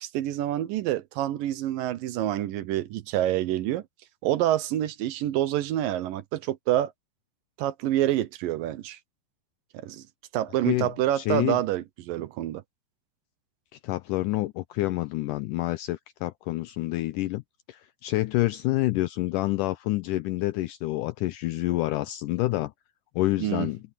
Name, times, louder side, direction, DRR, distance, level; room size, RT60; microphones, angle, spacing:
voice 1, 0.0-3.8 4.2-6.9 7.6-9.0 9.7-10.0 10.3-12.6 23.4-23.7, right 13 dB, 75° right, 2.4 m, -27 dB
voice 2, 10.7-11.6 13.8-17.4 17.7-22.7 23.2-23.8, left 17 dB, 90° left, 1.9 m, -28 dB
omnidirectional pair, 4.3 m